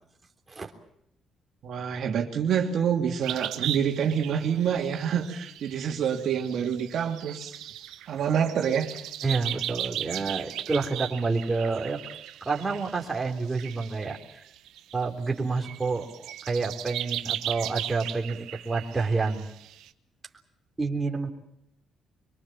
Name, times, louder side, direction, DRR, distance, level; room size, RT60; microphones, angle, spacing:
voice 1, 1.6-7.6 8.1-8.9, right 8 dB, 70° right, 1 dB, 2.8 m, -27 dB
sound 1, 3.2-15.1 15.5-19.9, right 12 dB, 90° right, 1.1 m, -37 dB
voice 2, 9.2-12.0 12.4-14.4 14.9-19.5 20.8-21.3, right 4 dB, 20° right, 1 dB, 3.6 m, -29 dB
24.0 x 24.0 x 7.4 m, 0.77 s
cardioid pair, 90°, 0 cm